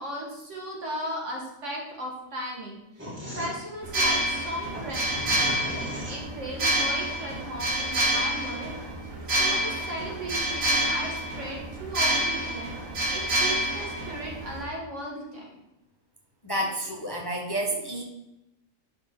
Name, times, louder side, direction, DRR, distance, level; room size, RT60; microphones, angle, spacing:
voice 1, 0.0-8.7 9.3-12.7 13.1-15.7 17.6-17.8, equal, 65° right, -2 dB, 2.1 m, -36 dB
sound 1, 3.0-6.7, equal, 10° right, 2.1 m, -38 dB
sound 2, 3.8-14.6, right 1 dB, 80° right, 1.8 m, -28 dB
voice 2, 16.4-18.0, right 1 dB, 20° left, 0 dB, 0.8 m, -30 dB
11.5 x 4.1 x 3.7 m, 0.91 s
omnidirectional pair, 1.4 m